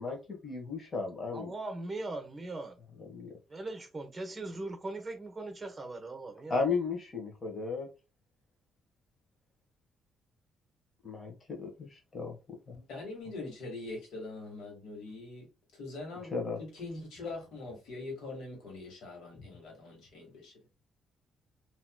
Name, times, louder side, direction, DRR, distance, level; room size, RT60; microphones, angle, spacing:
voice 1, 0.0-1.5 3.1-3.3 6.5-7.9 11.0-12.4 12.7-12.8 16.3-16.6, left 4 dB, 35° left, 1.3 m, -35 dB
voice 2, 1.3-2.8 3.5-6.6, right 2 dB, 25° right, 1.0 m, -40 dB
voice 3, 12.9-15.4 15.8-20.5, left 2 dB, 75° left, 1.7 m, -43 dB
3.0 x 2.9 x 2.2 m
cardioid pair, 90°, 0 cm